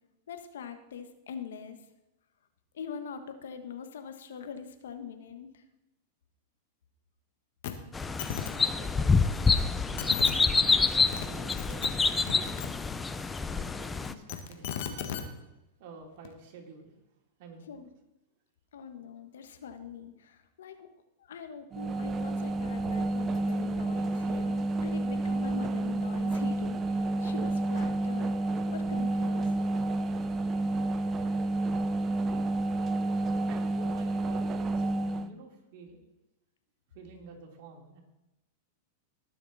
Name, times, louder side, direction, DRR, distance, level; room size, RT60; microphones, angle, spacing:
voice 1, 0.3-1.8 2.7-5.6 17.6-17.9 18.7-20.9 21.2-28.3 28.7-29.5, left 7 dB, 85° left, 8 dB, 1.3 m, -43 dB
sound 1, 7.6-7.7 8.0-8.5 9.6-9.7 10.0-10.3 10.9-11.3 11.5-12.7 14.0-15.2 16.2-16.3, left 10 dB, 65° left, 1.5 m, -35 dB
sound 2, 7.9-14.1, left 4 dB, 15° left, 0.6 m, -27 dB
voice 2, 8.3-12.6 13.5-15.2 15.8-16.9 17.4-17.7 33.5-36.0 36.9-38.0, right 4 dB, 55° right, 0 dB, 3.2 m, -50 dB
sound 3, 21.7-35.3, right 2 dB, 25° right, 0.6 m, -30 dB
19.5 x 6.7 x 4.1 m, 0.93 s
hypercardioid pair, 120°, 0 cm